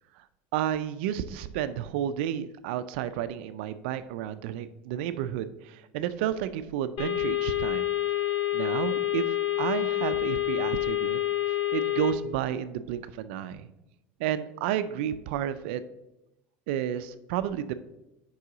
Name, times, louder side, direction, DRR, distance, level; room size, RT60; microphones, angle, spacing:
voice 1, 0.5-7.9 8.5-11.2 11.5-13.7 14.2-15.8 16.7-17.7, right 10 dB, 80° right, 12 dB, 0.4 m, -31 dB
sound 1, 7.0-12.1, left 13 dB, 65° left, 1.0 m, -28 dB
6.7 x 5.5 x 3.8 m, 0.92 s
supercardioid pair, 100°, 6 cm